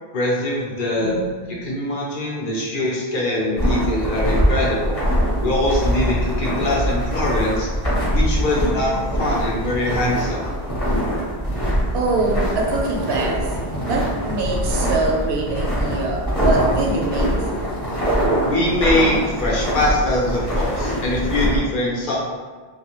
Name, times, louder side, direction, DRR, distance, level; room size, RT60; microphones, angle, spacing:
voice 1, 0.1-1.2 1.5-5.0 5.4-7.7 8.1-10.6 18.5-22.2, left 1 dB, 60° left, -3 dB, 0.7 m, -23 dB
voice 2, 1.0-1.7 11.9-13.5 13.8-17.3, right 3 dB, 75° right, -1 dB, 0.8 m, -24 dB
sound 1, 3.6-21.6, equal, 35° left, 0.9 m, -23 dB
2.4 x 2.4 x 2.8 m, 1.4 s
omnidirectional pair, 1.1 m